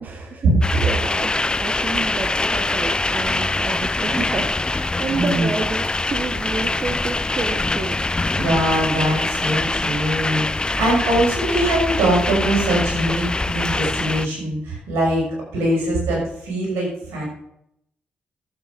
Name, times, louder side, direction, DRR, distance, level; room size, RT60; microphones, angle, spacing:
voice 1, 0.0-0.5 0.8-8.0, right 4 dB, 50° right, 4 dB, 1.4 m, -29 dB
sound 1, 0.6-14.3, left 2 dB, 20° left, 0.6 m, -23 dB
voice 2, 5.1-5.5 8.4-15.2 15.5-17.2, right 1 dB, 85° right, -3 dB, 6.1 m, -22 dB
13.5 x 8.3 x 5.2 m, 0.76 s
supercardioid pair, 50°, 4 cm